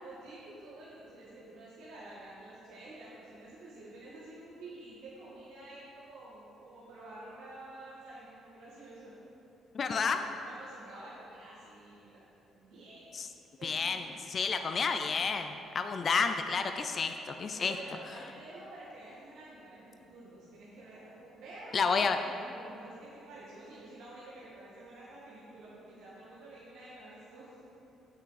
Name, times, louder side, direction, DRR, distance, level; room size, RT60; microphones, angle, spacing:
voice 1, 0.0-9.2 9.9-12.2 12.6-13.2 13.6-15.3 17.5-27.5, right 2 dB, 80° right, -9 dB, 2.0 m, -50 dB
voice 2, 9.7-10.2 13.1-13.3 13.6-17.8 21.7-22.2, left 5 dB, 40° left, 7 dB, 0.4 m, -30 dB
8.4 x 7.9 x 4.1 m, 2.8 s
cardioid pair, 115°, 0 cm